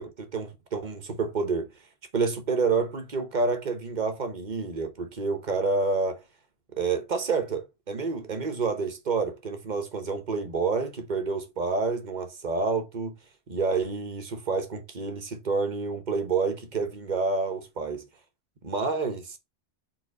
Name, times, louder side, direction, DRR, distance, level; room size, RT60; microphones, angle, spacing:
voice 1, 0.0-1.7 2.1-6.2 6.7-13.1 13.5-18.0 18.6-19.4, right 4 dB, 45° right, 1.1 m, -28 dB
4.5 x 3.8 x 5.3 m
omnidirectional pair, 1.1 m